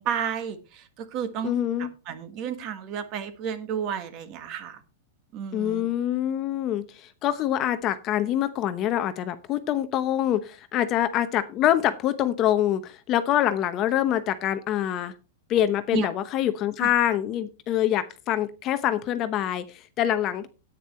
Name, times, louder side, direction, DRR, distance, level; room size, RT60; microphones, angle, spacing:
voice 1, 0.0-4.8 5.3-5.9 15.9-16.1 16.8-16.9, right 8 dB, 30° right, 11 dB, 1.5 m, -32 dB
voice 2, 1.4-1.9 5.5-15.1 15.5-20.5, left 11 dB, 25° left, 11 dB, 0.8 m, -25 dB
10.0 x 9.2 x 4.3 m, 0.30 s
supercardioid pair, 165°, 0 cm